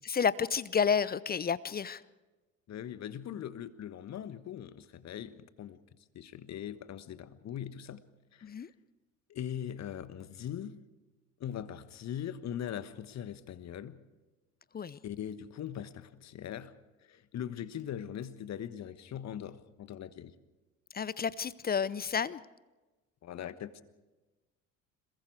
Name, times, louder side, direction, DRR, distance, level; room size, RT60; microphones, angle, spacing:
voice 1, 0.1-2.0 8.4-8.7 14.7-15.0 20.9-22.4, left 6 dB, 25° left, 0.7 m, -30 dB
voice 2, 2.7-5.8 6.1-8.0 8.3-8.6 9.3-10.8 11.4-14.0 15.0-16.7 17.0-20.4 23.2-23.8, left 10 dB, 45° left, 1.4 m, -41 dB
27.0 x 22.0 x 4.8 m
figure-of-eight pair, 55°, 39 cm